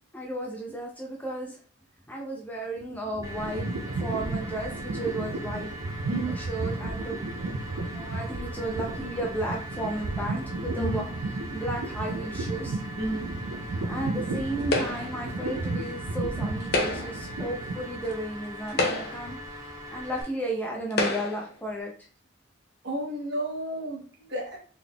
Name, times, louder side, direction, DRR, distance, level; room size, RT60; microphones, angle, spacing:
voice 1, 0.1-1.6 2.1-3.7 4.0-5.7 6.3-7.2 7.9-11.0 11.5-12.8 13.1-13.2 13.7-19.4 19.9-21.9, right 1 dB, 10° left, -1 dB, 0.4 m, -34 dB
sound 1, 2.8-18.2, right 2 dB, 75° right, 0.4 m, -33 dB
sound 2, 3.2-20.2, equal, 15° right, 0.8 m, -41 dB
voice 2, 6.1-6.4 10.8-11.0 13.0-13.3 22.8-24.6, right 1 dB, 55° right, 0 dB, 1.0 m, -32 dB
sound 3, 14.7-15.2 16.6-17.3 18.1-18.2 18.7-19.4 20.2-20.3 20.9-21.5, left 2 dB, 50° left, 0.6 m, -28 dB
3.8 x 3.5 x 2.2 m, 0.41 s
head